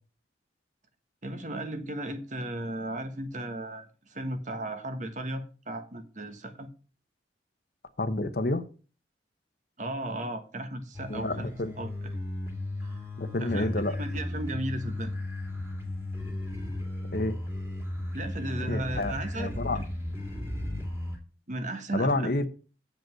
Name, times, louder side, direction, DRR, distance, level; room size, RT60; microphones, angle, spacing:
voice 1, 1.2-6.7 9.8-11.5 11.8-11.9 12.8-13.0 13.4-15.1 18.1-19.8 21.5-22.2, right 1 dB, 40° right, 1.3 m, -35 dB
voice 2, 8.0-8.7 11.1-11.7 13.2-14.0 17.1-17.4 18.7-19.8 21.9-22.5, left 2 dB, 55° left, 0.9 m, -29 dB
sound 1, 10.9-21.2, left 1 dB, 10° right, 2.6 m, -35 dB
7.8 x 5.2 x 7.6 m
head